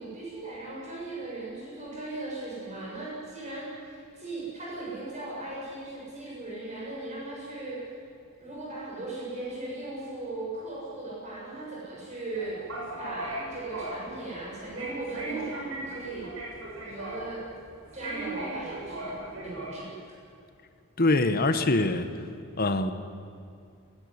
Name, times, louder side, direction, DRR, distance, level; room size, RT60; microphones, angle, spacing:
voice 1, 0.0-7.8 8.4-12.6 13.0-16.3 16.8-17.4 17.9-19.9, right 2 dB, 30° right, -5 dB, 7.3 m, -38 dB
sound 1, 12.3-19.7, right 2 dB, 65° right, 7.3 m, -38 dB
voice 2, 21.0-22.1 22.6-22.9, left 2 dB, 45° left, 9 dB, 1.4 m, -23 dB
22.5 x 16.0 x 9.8 m, 2.4 s
head